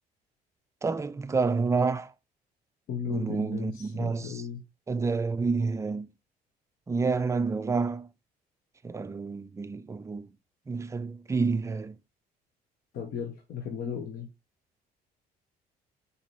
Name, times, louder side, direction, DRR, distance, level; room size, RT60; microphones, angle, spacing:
voice 1, 0.8-2.1 3.1-4.4 4.9-6.1 6.9-8.1 8.8-10.3 10.7-12.0, right 4 dB, 15° right, 0.4 m, -29 dB
voice 2, 2.9-4.6 12.9-14.3, left 7 dB, 60° left, 0.9 m, -36 dB
4.1 x 3.9 x 3.2 m
cardioid pair, 110°, 17 cm